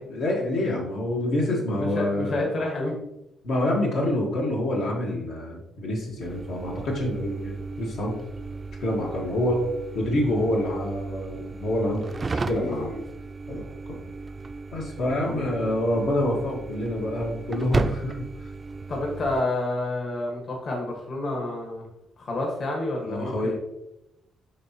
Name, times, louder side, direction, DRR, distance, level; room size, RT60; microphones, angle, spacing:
voice 1, 0.1-2.5 3.4-8.2 8.8-9.6 9.9-12.1 12.3-12.9 13.5-13.6 13.9-14.0 14.7-18.1 18.4-18.5 23.1-23.6, left 1 dB, 80° left, -3 dB, 1.7 m, -27 dB
voice 2, 1.8-2.9 12.5-13.0 15.2-15.7 18.9-21.8 22.2-23.6, left 2 dB, 55° left, 0 dB, 1.6 m, -29 dB
sound 1, 6.2-19.4, right 3 dB, 30° right, 0.4 m, -34 dB
9.7 x 3.4 x 3.0 m, 0.88 s
cardioid pair, 90°, 0 cm